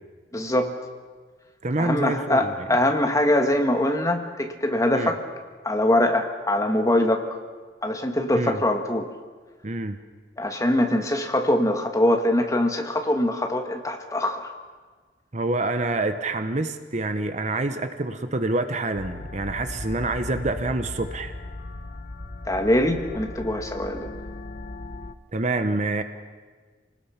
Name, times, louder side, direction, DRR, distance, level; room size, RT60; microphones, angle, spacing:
voice 1, 0.3-0.7 1.8-5.2 5.6-7.2 7.8-9.1 10.4-14.5 22.5-24.1, left 1 dB, 20° left, 4 dB, 1.7 m, -23 dB
voice 2, 1.6-2.7 4.9-5.1 8.3-8.6 9.6-10.0 15.3-21.3 25.3-26.0, right 2 dB, 40° right, 9 dB, 1.0 m, -27 dB
sound 1, 19.0-25.1, left 2 dB, 50° left, 1.1 m, -37 dB
27.5 x 19.0 x 5.9 m, 1.5 s
head